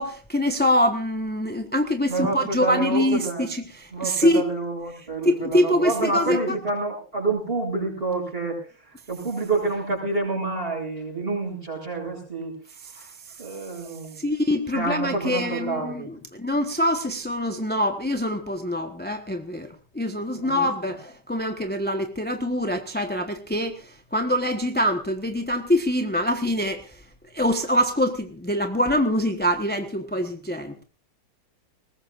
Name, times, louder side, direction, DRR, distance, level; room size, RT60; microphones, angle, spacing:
voice 1, 0.0-4.4 5.2-6.4 12.9-13.0 14.2-19.7 19.9-27.0 27.3-30.8, left 1 dB, 5° left, 5 dB, 0.9 m, -24 dB
voice 2, 2.1-3.5 3.9-12.6 13.0-14.2 14.7-16.1 20.4-20.5, right 3 dB, 30° right, 1 dB, 7.2 m, -28 dB
21.5 x 19.5 x 2.5 m, 0.36 s
omnidirectional pair, 1.9 m